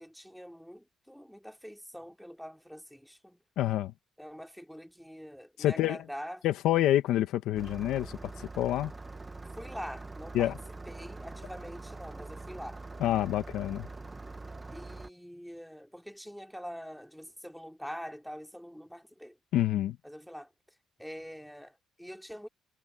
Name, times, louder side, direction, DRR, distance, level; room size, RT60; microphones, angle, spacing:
voice 1, 0.0-3.4 4.2-6.4 9.6-10.5 10.9-12.8 14.7-19.4 20.0-20.5 21.0-22.5, equal, ahead, 3.2 m, -44 dB
voice 2, 3.6-3.9 5.6-6.0 6.4-8.9 10.3-10.5 13.0-13.9 19.5-20.0, left 13 dB, 90° left, 1.6 m, -27 dB
Engine starting, 7.6-15.1, right 3 dB, 20° right, 0.9 m, -44 dB
cardioid pair, 90°, 0 cm